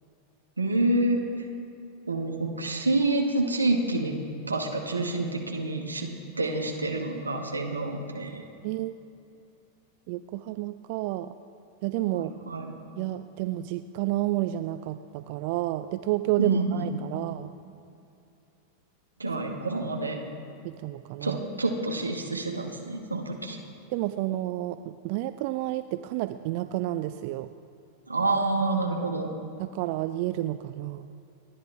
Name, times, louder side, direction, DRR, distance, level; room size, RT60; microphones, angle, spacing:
voice 1, 0.6-1.3 2.1-4.2 4.5-6.1 6.4-8.4 12.1-12.7 16.4-17.0 19.2-20.2 21.2-23.6 28.1-29.3, right 2 dB, 80° right, 1 dB, 1.8 m, -28 dB
voice 2, 8.6-8.9 10.1-11.3 11.8-12.3 13.0-17.5 20.6-21.4 23.9-27.5 29.6-31.1, right 15 dB, 45° right, 11 dB, 0.4 m, -30 dB
29.5 x 10.5 x 3.5 m, 2.7 s
figure-of-eight pair, 90°, 0 cm